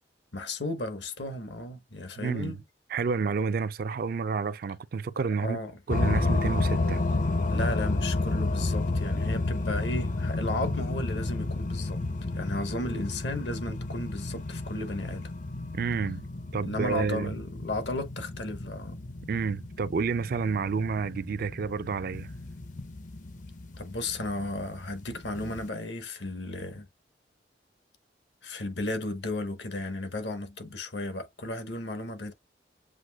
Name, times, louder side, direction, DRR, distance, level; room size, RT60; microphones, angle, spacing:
voice 1, 0.3-2.6 5.4-5.8 7.5-12.0 12.3-15.3 16.6-19.0 23.8-26.9 28.4-32.3, left 2 dB, 70° left, 1.0 m, -34 dB
voice 2, 2.2-2.6 2.9-5.6 5.9-7.0 15.7-16.2 16.5-17.3 19.3-22.3, right 5 dB, 55° right, 0.4 m, -29 dB
sound 1, 5.9-25.7, left 2 dB, 45° left, 0.6 m, -31 dB
7.6 x 2.7 x 2.2 m
head